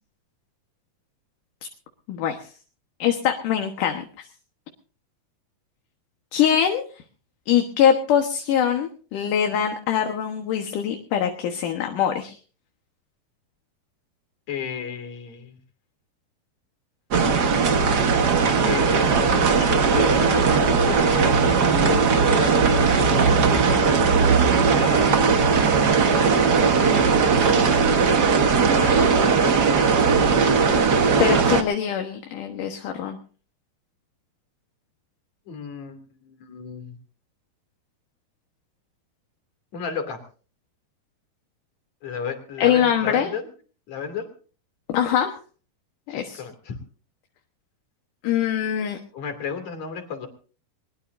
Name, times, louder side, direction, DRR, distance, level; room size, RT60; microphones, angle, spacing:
voice 1, 3.0-4.0 6.3-6.9 7.5-12.4 31.2-33.2 42.6-43.3 44.9-45.3 46.1-46.4 48.2-49.0, left 9 dB, 70° left, 4 dB, 2.8 m, -23 dB
voice 2, 14.5-15.5 18.5-23.5 24.8-25.9 28.8-29.5 35.5-36.9 39.7-40.2 42.0-43.4 43.9-44.3 46.1-46.8 49.1-50.3, left 6 dB, 55° left, 6 dB, 3.9 m, -33 dB
sound 1, 17.1-31.6, right 5 dB, 60° right, 1.0 m, -18 dB
21.5 x 21.5 x 2.7 m, 0.41 s
omnidirectional pair, 4.0 m